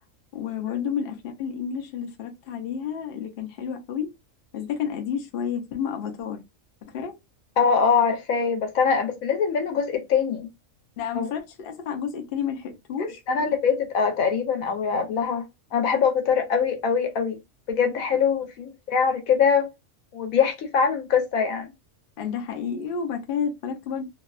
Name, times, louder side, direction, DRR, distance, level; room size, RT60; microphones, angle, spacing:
voice 1, 0.3-4.1 4.5-6.4 6.9-7.1 11.0-13.2 22.2-24.1, left 7 dB, 55° left, 0.7 m, -30 dB
voice 2, 7.6-10.5 11.1-11.3 13.3-15.4 15.7-17.4 17.7-19.7 20.1-21.7, left 6 dB, 80° left, 1.1 m, -23 dB
2.7 x 2.2 x 2.3 m
omnidirectional pair, 1.4 m